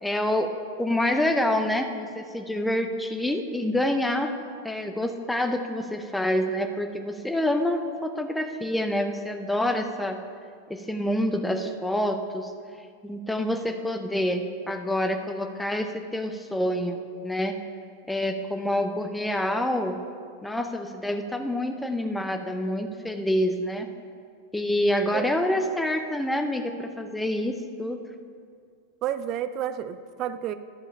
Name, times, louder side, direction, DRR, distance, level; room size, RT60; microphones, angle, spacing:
voice 1, 0.0-4.3 4.6-10.2 10.7-12.5 13.0-17.5 18.1-20.0 20.4-23.9 24.5-28.0, left 1 dB, 5° left, 6 dB, 0.6 m, -27 dB
voice 2, 29.0-30.5, right 10 dB, 35° right, 12 dB, 0.4 m, -30 dB
11.0 x 4.9 x 5.4 m, 2.2 s
figure-of-eight pair, 90°, 0 cm